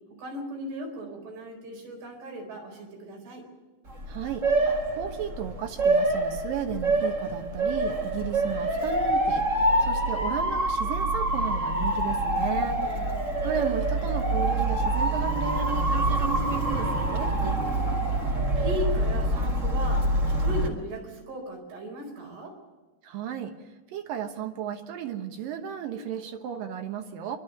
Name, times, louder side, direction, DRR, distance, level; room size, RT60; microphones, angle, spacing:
voice 1, 0.2-3.5 12.5-13.2 17.3-18.0 18.6-20.1 20.4-22.5, equal, 85° right, 1 dB, 6.5 m, -37 dB
Motor vehicle (road) / Siren, 3.9-20.7, right 1 dB, 35° right, 1.2 m, -26 dB
voice 2, 4.1-9.5 9.8-13.1 13.4-17.3 23.0-23.5 23.9-27.4, right 8 dB, 70° right, 7 dB, 2.7 m, -34 dB
27.0 x 12.5 x 8.0 m, 1.2 s
omnidirectional pair, 4.6 m